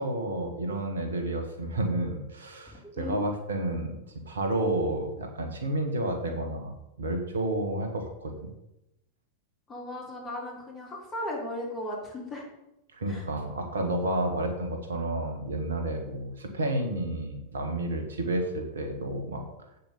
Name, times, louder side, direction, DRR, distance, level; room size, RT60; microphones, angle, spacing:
voice 1, 0.0-4.0 4.3-8.5 12.9-19.4, right 1 dB, 70° right, 4 dB, 1.9 m, -31 dB
voice 2, 2.7-3.2 9.7-12.4 13.1-13.3, left 1 dB, 25° left, -3 dB, 4.7 m, -36 dB
8.5 x 7.7 x 6.9 m, 0.89 s
figure-of-eight pair, 90°, 0 cm